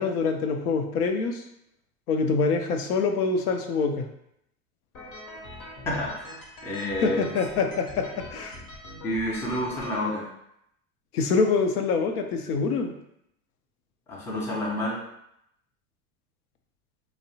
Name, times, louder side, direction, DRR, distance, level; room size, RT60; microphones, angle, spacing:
voice 1, 0.0-1.4 2.1-4.1 7.0-8.6 11.1-12.9, left 4 dB, 85° left, 5 dB, 0.5 m, -25 dB
sound 1, 4.9-10.1, left 1 dB, 70° left, 0.9 m, -43 dB
voice 2, 5.9-7.3 9.0-10.3 14.1-15.0, left 1 dB, 5° left, -4 dB, 0.3 m, -29 dB
2.6 x 2.0 x 2.7 m, 0.77 s
hypercardioid pair, 100°, 44 cm